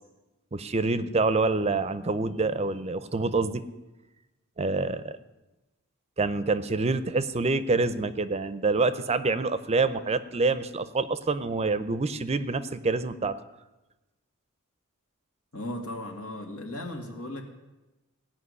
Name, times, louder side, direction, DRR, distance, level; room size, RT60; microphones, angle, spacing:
voice 1, 0.5-3.6 4.6-5.2 6.2-13.4, right 3 dB, 30° right, 13 dB, 0.6 m, -26 dB
voice 2, 15.5-17.4, left 1 dB, 85° left, 3 dB, 2.1 m, -36 dB
17.5 x 5.9 x 9.6 m, 1.1 s
head